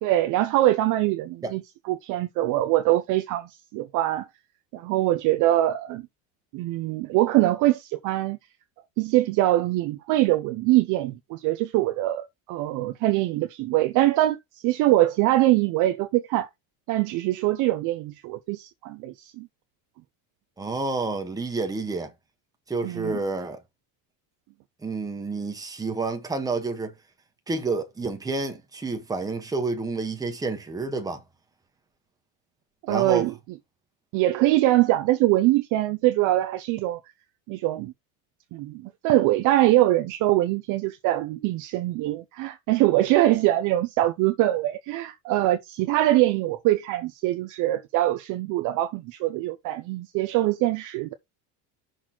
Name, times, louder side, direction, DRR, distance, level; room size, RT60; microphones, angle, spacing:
voice 1, 0.0-1.6 1.9-4.3 4.7-6.0 6.5-8.4 9.0-14.4 14.6-16.5 16.9-19.5 22.8-23.2 32.9-33.3 34.1-37.0 37.5-37.9 38.5-51.1, right 15 dB, 45° right, 0.6 m, -23 dB
voice 2, 20.6-22.1 22.7-23.6 24.8-26.9 27.5-31.2 32.9-33.3, right 3 dB, 10° right, 1.2 m, -29 dB
6.3 x 4.1 x 5.9 m
cardioid pair, 180°, 46 cm